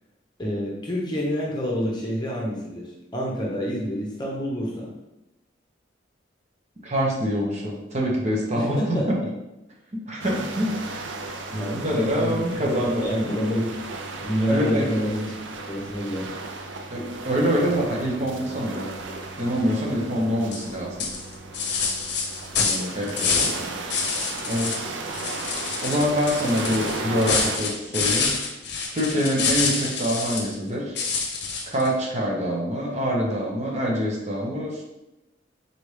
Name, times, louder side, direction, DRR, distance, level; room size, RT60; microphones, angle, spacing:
voice 1, 0.4-4.9 8.5-9.3 11.6-13.7 14.2-15.3 15.7-16.3 22.6-22.9 23.2-23.8, equal, 25° left, -3 dB, 0.8 m, -28 dB
voice 2, 6.8-8.8 10.1-11.0 11.5-13.1 14.5-14.9 16.9-18.9 19.4-21.0 22.9-23.5 24.5-25.0 25.8-28.4 28.9-31.0 31.7-34.8, equal, 40° right, -2 dB, 1.0 m, -25 dB
sound 1, 10.2-27.6, right 3 dB, 90° right, 0.5 m, -35 dB
sound 2, 20.5-20.7 21.0-23.6 23.9-24.8 25.1-30.5 31.0-31.9, left 5 dB, 65° left, 0.7 m, -27 dB
4.1 x 3.4 x 3.3 m, 0.93 s
head